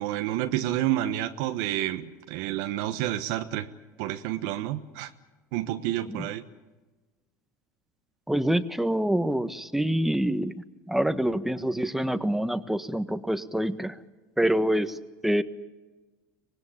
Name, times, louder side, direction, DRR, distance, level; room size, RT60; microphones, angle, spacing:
voice 1, 0.0-3.7 4.0-5.1 5.5-6.4, right 13 dB, 75° right, 8 dB, 1.2 m, -29 dB
voice 2, 8.3-10.5 10.9-14.0 14.4-15.4, right 1 dB, 5° right, 11 dB, 1.4 m, -26 dB
25.0 x 19.5 x 8.6 m, 1.2 s
supercardioid pair, 95°, 9 cm